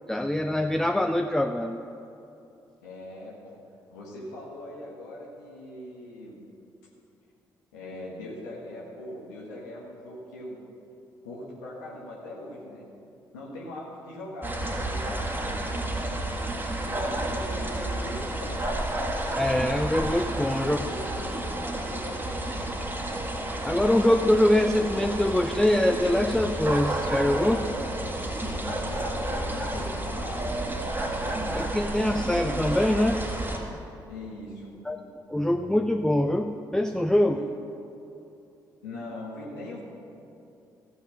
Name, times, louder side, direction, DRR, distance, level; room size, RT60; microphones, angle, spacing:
voice 1, 0.1-1.8 19.4-20.8 23.6-27.7 31.5-33.3 34.9-35.0 35.3-37.4, left 1 dB, 5° left, 6 dB, 0.5 m, -24 dB
voice 2, 2.8-3.5 3.9-6.3 7.7-10.6 11.2-12.8 13.3-15.7 16.9-18.7 20.6-22.6 28.8-30.7 34.1-34.8 37.3-37.5 38.8-39.8, left 1 dB, 85° left, -4 dB, 1.4 m, -41 dB
sound 1, 14.4-33.6, right 1 dB, 20° right, 2.0 m, -31 dB
sound 2, 24.7-25.5 25.9-30.2 30.5-31.7 32.0-32.6, left 2 dB, 45° left, 2.2 m, -50 dB
14.0 x 6.5 x 6.3 m, 2.8 s
hypercardioid pair, 45°, 10 cm